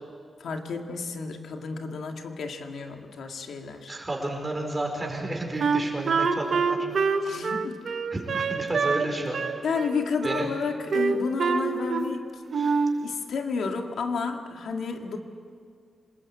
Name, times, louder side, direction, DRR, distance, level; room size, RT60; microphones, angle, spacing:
voice 1, 0.4-4.0 7.2-7.8 9.6-12.4 13.0-15.2, left 4 dB, 90° left, 4 dB, 2.1 m, -31 dB
voice 2, 3.9-6.8 8.1-9.4 10.2-10.5 12.6-12.8, right 2 dB, 20° right, 1 dB, 4.8 m, -31 dB
Wind instrument woodwind instrument, 5.6-9.1 9.3-10.5 10.9-12.2 12.5-13.0, right 5 dB, 55° right, 1.4 m, -25 dB
26.5 x 20.5 x 8.6 m, 2.2 s
wide cardioid pair, 165°, 0 cm